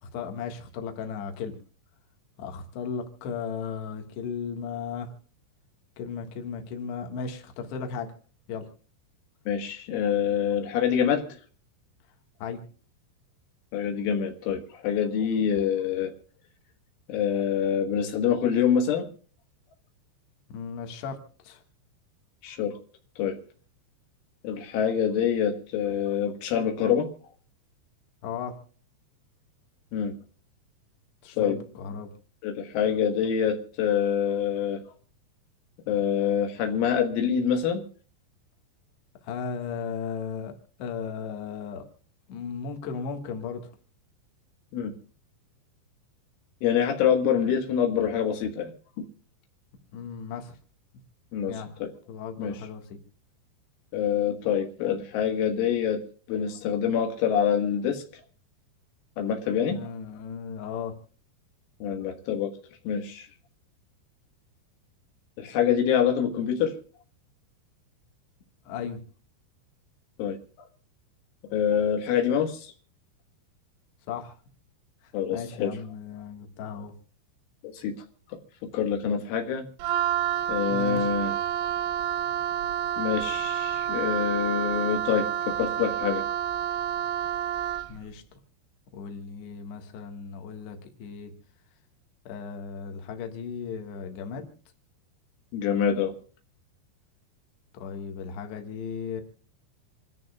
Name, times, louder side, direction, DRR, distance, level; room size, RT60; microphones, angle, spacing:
voice 1, 0.0-1.6 2.4-5.1 6.0-8.1 8.5-8.7 12.4-12.6 20.5-21.6 28.2-28.6 31.2-32.1 39.2-41.9 42.3-43.7 49.9-50.6 51.5-51.7 52.1-53.0 59.7-61.0 68.7-69.0 74.1-74.4 75.0-76.9 80.7-81.1 87.9-88.2 88.9-91.3 92.3-94.5 97.7-99.2, left 6 dB, 70° left, 4 dB, 3.5 m, -36 dB
voice 2, 9.5-11.3 13.7-16.1 17.1-19.1 22.4-22.8 23.2-23.4 24.4-27.1 29.9-30.1 31.4-31.6 32.4-34.8 35.9-37.8 44.7-44.9 46.6-48.7 49.0-49.1 51.3-51.9 52.4-52.6 53.9-56.0 56.3-58.0 59.2-59.8 61.8-62.5 62.9-63.3 65.4-66.8 70.2-70.4 71.5-72.7 75.1-75.7 77.7-78.0 78.6-79.7 80.5-81.3 83.0-86.3 95.5-96.2, left 8 dB, 85° left, 3 dB, 4.0 m, -26 dB
Wind instrument woodwind instrument, 79.8-88.0, right 10 dB, 85° right, 3.2 m, -29 dB
27.5 x 14.0 x 2.3 m, 0.41 s
omnidirectional pair, 5.4 m